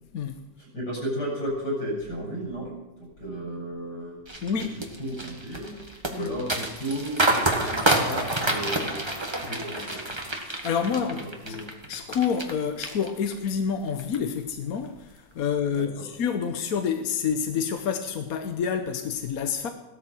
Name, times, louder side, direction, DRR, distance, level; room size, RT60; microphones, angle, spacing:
voice 1, 0.6-4.6 5.0-10.0 11.1-11.7 15.7-16.1, equal, 85° left, 7.4 m, -34 dB
sound 1, 4.3-12.5 12.8-13.5 13.9-14.2, right 1 dB, 15° right, 1.6 m, -28 dB
voice 2, 4.4-4.8 6.1-6.3 10.4-11.6 11.9-19.7, left 7 dB, 65° left, 1.3 m, -28 dB
16.5 x 13.0 x 6.2 m
omnidirectional pair, 1.8 m